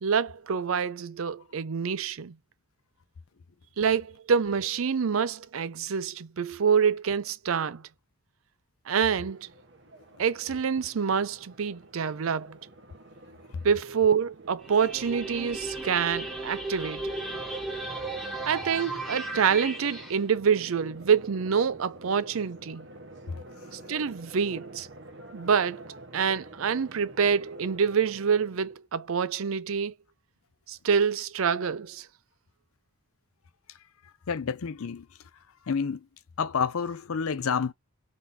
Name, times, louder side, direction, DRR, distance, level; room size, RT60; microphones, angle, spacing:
voice 1, 0.0-2.4 3.8-7.8 8.9-9.5 10.2-12.6 13.6-17.1 18.4-22.9 23.7-24.9 25.3-25.9 26.1-29.9 30.7-32.1, right 6 dB, 75° right, 0.5 m, -26 dB
sound 1, 9.0-28.8, right 1 dB, 55° right, 1.2 m, -49 dB
sound 2, 14.6-20.1, right 2 dB, ahead, 1.2 m, -35 dB
voice 2, 34.3-35.0 35.7-36.0 36.4-37.7, left 6 dB, 85° left, 0.5 m, -29 dB
3.7 x 3.6 x 2.8 m
head